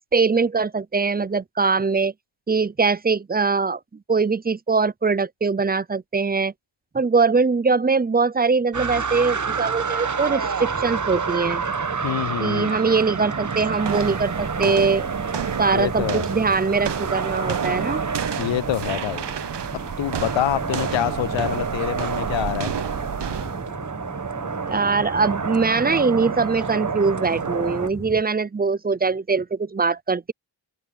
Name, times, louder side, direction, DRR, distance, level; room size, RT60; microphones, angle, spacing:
voice 1, 0.1-2.1 2.5-3.8 4.1-6.5 6.9-11.6 12.4-15.1 15.6-18.0 24.6-30.3, right 4 dB, 20° right, 0.6 m, -22 dB
sound 1, 8.7-27.9, right 5 dB, 40° right, 1.1 m, -28 dB
sound 2, 10.6-28.2, left 1 dB, 5° left, 1.0 m, -41 dB
voice 2, 12.0-12.8 15.7-16.3 18.4-19.2 19.7-22.7, left 13 dB, 80° left, 0.5 m, -26 dB
sound 3, 13.8-23.7, right 8 dB, 65° right, 1.0 m, -32 dB
open air
cardioid pair, 65°, 46 cm